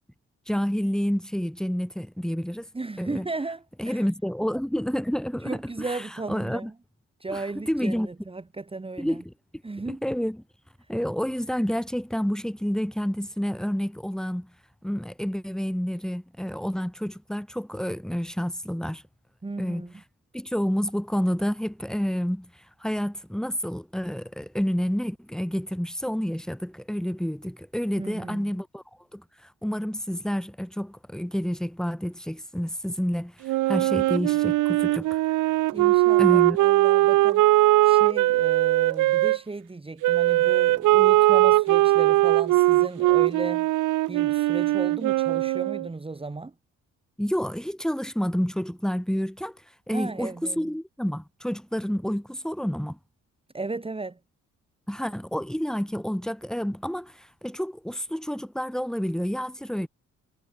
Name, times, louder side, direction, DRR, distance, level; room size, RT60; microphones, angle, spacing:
voice 1, 0.5-2.7 3.0-3.3 3.8-6.7 7.3-8.1 9.0-9.3 9.9-10.4 10.9-14.5 14.8-19.0 19.6-19.9 20.3-22.5 22.8-28.8 29.1-29.2 29.6-35.2 35.8-35.9 36.2-36.6 47.2-49.6 49.9-53.0 54.9-59.9, equal, ahead, 3.7 m, -29 dB
voice 2, 2.7-4.0 5.4-6.7 7.2-9.2 9.6-10.0 19.4-19.9 28.0-28.6 35.7-43.7 44.1-46.5 49.9-50.7 53.5-54.2, right 3 dB, 20° right, 2.4 m, -35 dB
Wind instrument woodwind instrument, 33.4-39.4 40.0-45.9, right 17 dB, 85° right, 0.8 m, -20 dB
cardioid pair, 90°, 30 cm